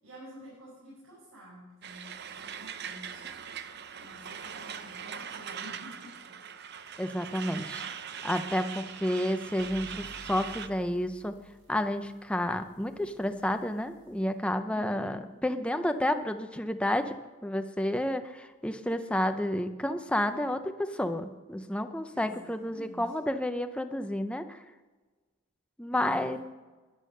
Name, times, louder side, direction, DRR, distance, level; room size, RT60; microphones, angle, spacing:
voice 1, 0.0-3.3 4.0-6.4 14.7-15.2 22.1-23.1 25.9-26.4, equal, 85° right, -6 dB, 5.8 m, -50 dB
Truck, 1.8-10.7, right 7 dB, 50° right, 0.7 m, -41 dB
voice 2, 7.0-7.9 8.2-11.3 11.7-17.2 17.4-24.6 25.8-26.4, left 1 dB, 5° left, 8 dB, 0.5 m, -30 dB
sound 1, 9.6-16.9, left 1 dB, 65° right, 5.9 m, -57 dB
13.0 x 10.5 x 6.5 m, 1.3 s
head